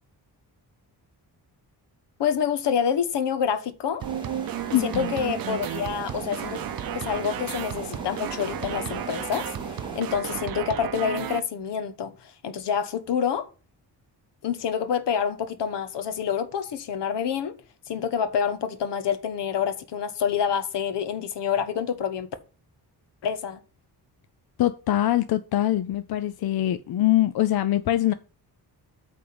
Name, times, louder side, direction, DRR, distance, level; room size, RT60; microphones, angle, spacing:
voice 1, 2.2-4.0 4.8-6.6 6.9-9.5 9.9-13.5 14.4-17.5 17.9-22.3 23.2-23.6, left 7 dB, 80° left, 1.2 m, -27 dB
sound 1, 4.0-10.6, right 2 dB, 10° right, 2.0 m, -39 dB
sound 2, 4.0-11.4, right 10 dB, 55° right, 0.7 m, -33 dB
voice 2, 4.7-5.1 24.6-28.1, left 13 dB, 65° left, 0.6 m, -23 dB
8.7 x 3.7 x 6.7 m
wide cardioid pair, 165°, 41 cm